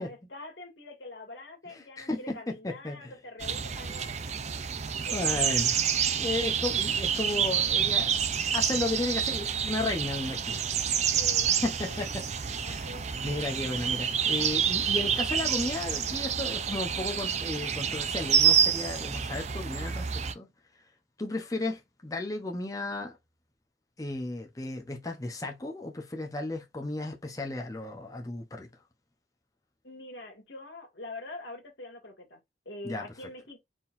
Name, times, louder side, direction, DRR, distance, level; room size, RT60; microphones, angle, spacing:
voice 1, 0.0-4.1 5.0-5.6 11.1-11.5 11.9-12.3 12.6-13.1 29.8-33.6, left 2 dB, 80° left, 2.0 m, -44 dB
voice 2, 1.7-3.1 4.8-5.7 6.2-8.1 8.5-10.6 11.6-12.3 12.7-12.9 13.2-20.5 21.2-23.2 24.0-28.7 32.8-33.1, left 2 dB, 20° left, 0.8 m, -34 dB
sound 1, 3.4-20.3, right 8 dB, 40° right, 0.5 m, -28 dB
4.5 x 3.8 x 2.6 m
head